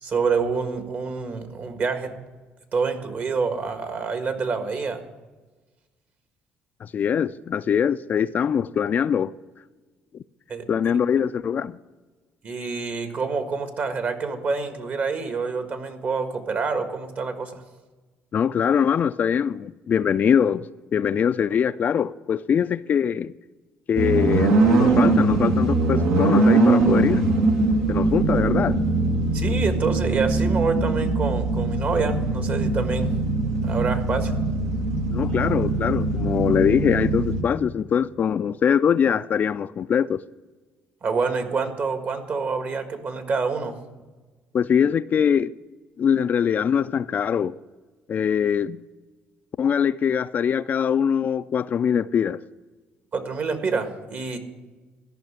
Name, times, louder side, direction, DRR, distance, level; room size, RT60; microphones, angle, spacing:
voice 1, 0.0-2.1 2.7-5.0 10.5-10.7 12.4-17.6 29.3-33.1 33.6-34.3 41.0-43.8 53.1-54.4, right 4 dB, 50° right, 1.6 m, -27 dB
voice 2, 6.8-9.3 10.7-11.8 18.3-20.7 20.9-23.3 23.9-27.2 27.9-28.8 35.1-40.2 44.5-45.5 46.0-47.6 48.1-48.8 49.6-52.4, left 8 dB, 45° left, 0.3 m, -22 dB
sound 1, 24.0-37.4, right 2 dB, 85° right, 1.9 m, -21 dB
13.5 x 5.8 x 8.8 m
supercardioid pair, 85°, 4 cm